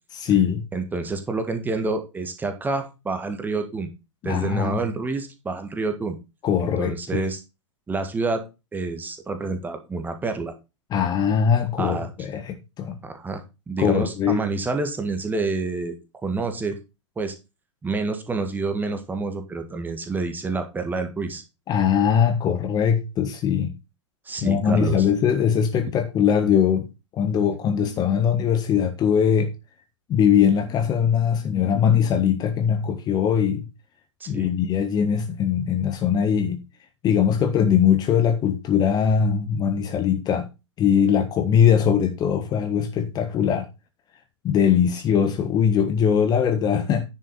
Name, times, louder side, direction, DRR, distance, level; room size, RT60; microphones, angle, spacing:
voice 1, 0.1-0.6 4.2-4.8 6.4-7.2 10.9-13.0 13.8-14.4 21.7-23.7 24.4-26.9 27.1-29.5 30.1-33.6 34.3-36.6 37.0-40.5 40.8-43.7 44.4-47.0, left 8 dB, 25° left, 1.3 m, -21 dB
voice 2, 0.7-3.9 4.2-6.2 6.6-7.4 7.9-8.4 8.7-10.5 11.8-12.1 13.0-16.8 17.1-17.3 17.8-21.4 24.2-25.1 34.2-34.5, right 3 dB, 10° right, 1.7 m, -28 dB
10.0 x 6.6 x 4.0 m
figure-of-eight pair, 105°, 16 cm